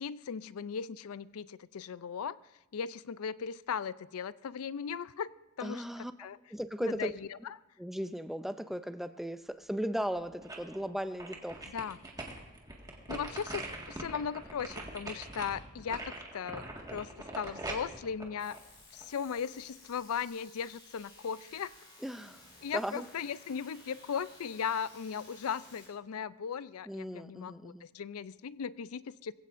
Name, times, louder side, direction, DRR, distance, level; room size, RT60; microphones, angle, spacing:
voice 1, 0.0-2.4 2.7-5.3 5.6-5.9 6.2-6.4 6.8-7.1 11.7-12.0 13.1-18.6 18.9-21.7 22.6-29.3, left 7 dB, 85° left, 17 dB, 0.4 m, -37 dB
voice 2, 5.6-7.1 7.8-11.6 22.0-22.4 22.7-23.1 26.9-27.9, equal, ahead, 10 dB, 0.4 m, -37 dB
sound 1, 9.9-10.8 11.2-19.3 19.7-19.8, right 2 dB, 15° right, 1.7 m, -43 dB
sound 2, 18.4-25.9, left 2 dB, 20° left, 6.2 m, -56 dB
22.0 x 16.0 x 2.6 m, 0.96 s
head